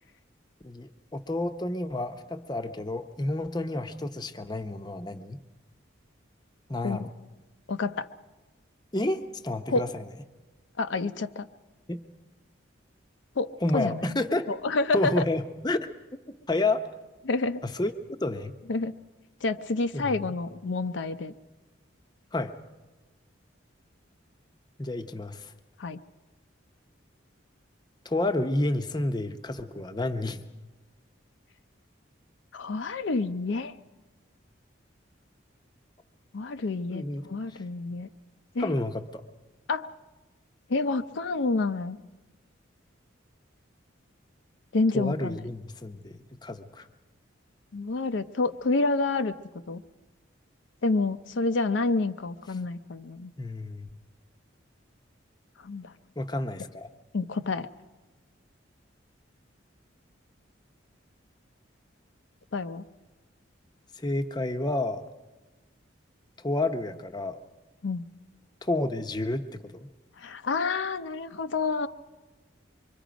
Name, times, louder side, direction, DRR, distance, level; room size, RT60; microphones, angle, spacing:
voice 1, 0.6-5.4 6.7-7.1 8.9-10.0 11.9-12.0 13.6-14.5 14.9-15.9 16.5-16.8 17.6-17.9 18.2-18.5 19.9-20.3 22.3-22.5 24.8-25.5 28.0-30.4 36.9-37.2 37.5-37.6 38.6-39.2 44.9-46.9 53.4-53.9 56.2-56.9 64.0-65.0 66.4-67.4 68.6-69.9, left 2 dB, 20° left, 7 dB, 0.7 m, -30 dB
voice 2, 7.7-8.1 9.7-9.9 10.8-11.5 13.4-14.2 14.5-15.2 17.2-17.6 18.7-18.9 19.4-21.3 25.8-26.0 32.5-33.8 36.3-38.1 38.5-38.7 39.7-39.9 40.7-42.0 44.7-45.4 47.7-49.3 49.7-49.8 50.8-53.3 55.6-55.9 57.1-57.7 62.5-62.8 67.8-68.0 70.2-71.9, left 3 dB, 70° left, 8 dB, 0.6 m, -28 dB
25.0 x 23.5 x 5.1 m, 1.2 s
head